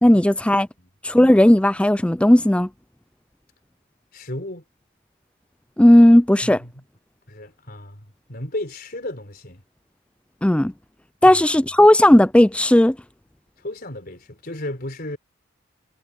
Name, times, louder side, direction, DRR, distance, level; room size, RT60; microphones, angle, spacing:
voice 1, 0.0-0.7 1.0-2.7 5.8-6.6 10.4-10.7 11.2-13.0, left 1 dB, 5° left, 0.4 m, -14 dB
voice 2, 4.1-4.6 6.4-6.8 7.3-9.6 11.2-11.4 13.6-15.2, left 1 dB, 50° left, 4.2 m, -34 dB
head